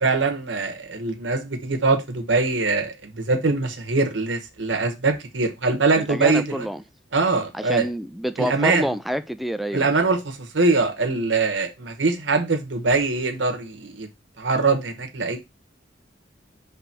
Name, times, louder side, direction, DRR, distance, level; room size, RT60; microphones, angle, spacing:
voice 1, 0.0-6.7 7.1-7.9 8.4-8.9 9.7-14.1 14.4-15.4, right 3 dB, 75° right, 1.2 m, -23 dB
voice 2, 6.0-6.8 7.5-9.9, equal, ahead, 0.4 m, -27 dB
5.9 x 3.4 x 5.8 m
head